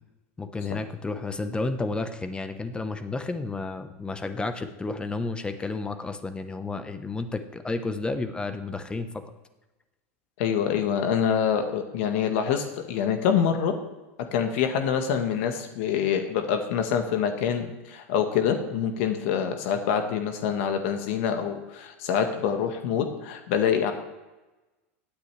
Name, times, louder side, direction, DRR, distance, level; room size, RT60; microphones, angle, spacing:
voice 1, 0.4-9.1, left 3 dB, 15° left, 9 dB, 1.0 m, -31 dB
voice 2, 10.4-13.7 14.3-23.9, left 8 dB, 65° left, 6 dB, 1.4 m, -26 dB
16.5 x 9.3 x 3.4 m, 1.1 s
hypercardioid pair, 110°, 7 cm